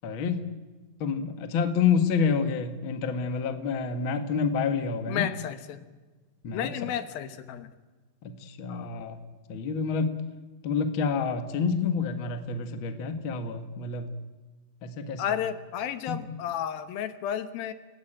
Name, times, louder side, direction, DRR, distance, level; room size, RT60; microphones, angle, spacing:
voice 1, 0.0-0.4 1.0-5.3 6.4-6.7 8.2-9.2 9.5-10.2 10.6-14.1 14.8-15.2 16.1-16.2, left 5 dB, 50° left, 8 dB, 1.6 m, -28 dB
voice 2, 5.1-5.9 6.5-7.7 8.7-8.9 15.2-17.7, left 9 dB, 70° left, 11 dB, 2.8 m, -32 dB
28.5 x 17.5 x 8.9 m, 1.3 s
omnidirectional pair, 4.6 m